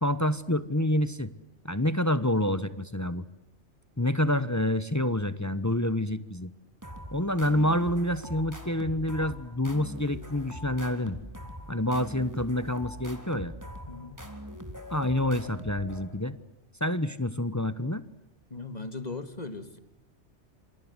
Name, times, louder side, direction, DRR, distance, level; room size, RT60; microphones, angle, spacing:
voice 1, 0.0-1.3 1.6-3.2 4.0-6.5 7.1-11.2 11.7-13.5 14.9-16.4 16.8-18.0, left 1 dB, 15° left, 14 dB, 1.1 m, -27 dB
sound 1, 6.8-16.3, equal, 15° right, 3.6 m, -43 dB
voice 2, 13.9-14.2 18.5-19.8, left 3 dB, 35° left, 11 dB, 2.3 m, -38 dB
28.0 x 27.0 x 8.0 m, 0.88 s
omnidirectional pair, 1.2 m